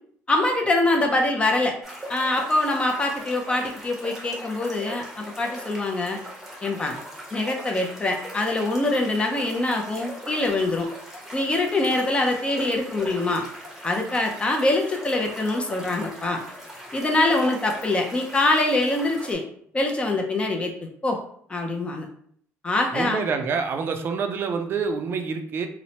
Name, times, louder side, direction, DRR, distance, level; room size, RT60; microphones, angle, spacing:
voice 1, 0.3-1.7 2.1-6.2 6.6-7.0 7.3-10.9 11.3-13.5 13.8-16.4 16.9-19.4 19.7-20.7 21.0-21.2 21.5-22.1 22.6-23.2, left 2 dB, 20° left, 2 dB, 0.4 m, -24 dB
sound 1, 1.8-19.3, equal, 5° right, 0.7 m, -40 dB
voice 2, 22.9-25.7, right 5 dB, 45° right, 6 dB, 0.4 m, -27 dB
3.0 x 2.0 x 2.7 m, 0.63 s
cardioid pair, 130°, 5 cm